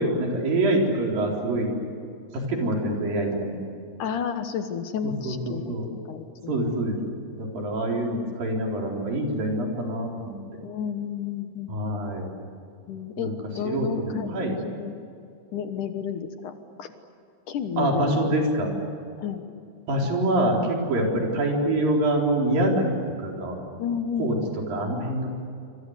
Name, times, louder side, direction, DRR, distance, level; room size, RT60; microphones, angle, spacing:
voice 1, 0.0-1.7 2.3-3.6 5.0-5.9 6.5-10.4 11.7-12.3 13.2-13.4 13.6-14.5 17.8-18.7 19.9-22.9 23.2-23.6 24.2-24.3 24.7-25.3, right 1 dB, 55° right, 0 dB, 5.9 m, -25 dB
voice 2, 4.0-6.5 10.6-11.7 12.9-14.3 14.6-15.0 15.5-16.9 17.5-18.5 19.2-19.4 23.8-24.5, left 7 dB, 65° left, 8 dB, 2.1 m, -31 dB
27.5 x 26.0 x 8.2 m, 2.5 s
omnidirectional pair, 5.1 m